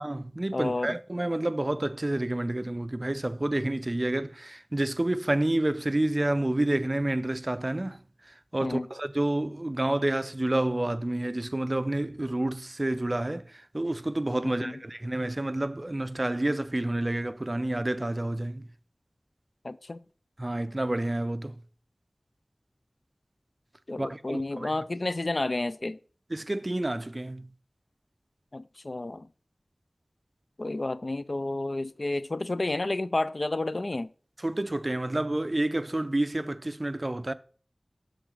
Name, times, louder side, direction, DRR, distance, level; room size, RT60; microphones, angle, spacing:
voice 1, 0.0-18.7 20.4-21.6 24.0-24.7 26.3-27.5 34.4-37.3, right 1 dB, 35° right, 0.5 m, -29 dB
voice 2, 0.5-1.0 8.6-8.9 14.4-14.7 19.6-20.0 23.9-26.0 28.5-29.3 30.6-34.1, left 2 dB, 60° left, 0.3 m, -31 dB
6.7 x 3.8 x 6.2 m
wide cardioid pair, 50°, 0 cm